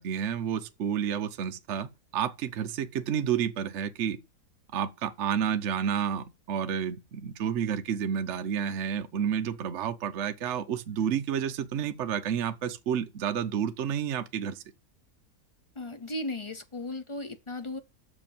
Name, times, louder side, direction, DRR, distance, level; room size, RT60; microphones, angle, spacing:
voice 1, 0.0-4.2 4.7-14.6, right 8 dB, 55° right, 0.9 m, -30 dB
voice 2, 15.8-17.8, left 2 dB, 45° left, 0.4 m, -36 dB
6.7 x 5.1 x 7.1 m
omnidirectional pair, 1.7 m